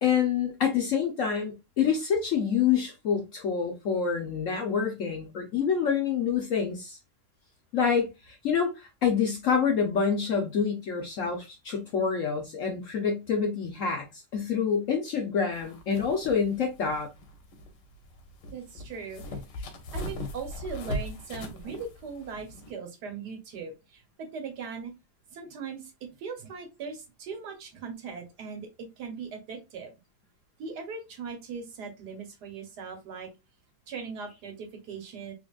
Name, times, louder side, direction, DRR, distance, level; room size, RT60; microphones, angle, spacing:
voice 1, 0.0-7.0 7.7-14.0 14.3-17.1, left 6 dB, 60° left, 0.9 m, -27 dB
sound 1, 15.5-22.7, left 1 dB, 80° left, 1.5 m, -39 dB
voice 2, 18.5-19.2 19.9-24.9 25.3-28.7 29.0-29.9 30.6-33.3 33.9-35.3, right 5 dB, 70° right, 1.5 m, -39 dB
3.7 x 3.3 x 2.4 m
omnidirectional pair, 1.9 m